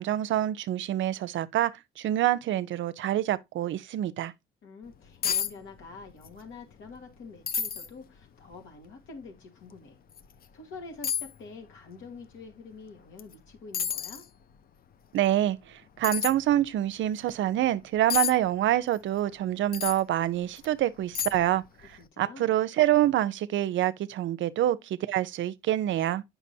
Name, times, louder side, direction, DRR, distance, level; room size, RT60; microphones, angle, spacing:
voice 1, 0.0-4.3 15.1-15.6 16.0-21.6 22.2-26.2, right 13 dB, 75° right, 0.6 m, -26 dB
voice 2, 4.6-10.0 10.5-14.2 22.0-22.6, left 4 dB, 80° left, 2.4 m, -46 dB
sound 1, 4.9-5.0 5.2-5.5 5.8-6.4 6.7-6.8 7.5-7.9 8.5-8.6 10.1-10.3 11.0-11.3 13.2-13.3 13.7-14.2 16.0-16.3 18.1-18.3 19.7-20.0 20.6-20.7 21.1-21.6 21.8-22.0, left 8 dB, 50° left, 0.5 m, -30 dB
8.3 x 5.7 x 2.7 m
cardioid pair, 90°, 20 cm